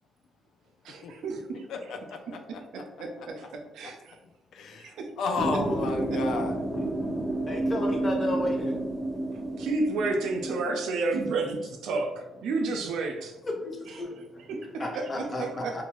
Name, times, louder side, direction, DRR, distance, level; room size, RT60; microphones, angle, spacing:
voice 1, 0.8-1.7 2.3-2.4 3.0-4.2 4.8-5.1 6.1-6.2 9.6-13.3 13.9-14.0 14.5-15.8, right 3 dB, 80° right, 3 dB, 0.5 m, -31 dB
voice 2, 1.7-2.6 4.5-4.9 5.2-6.6, left 4 dB, 75° left, 5 dB, 0.4 m, -32 dB
sound 1, 5.4-10.6, right 1 dB, 10° right, 0.4 m, -30 dB
voice 3, 7.5-8.8 13.6-14.5 14.8-15.8, left 1 dB, 30° left, 1 dB, 0.8 m, -33 dB
2.8 x 2.3 x 2.9 m, 0.99 s
cardioid pair, 90°, 0 cm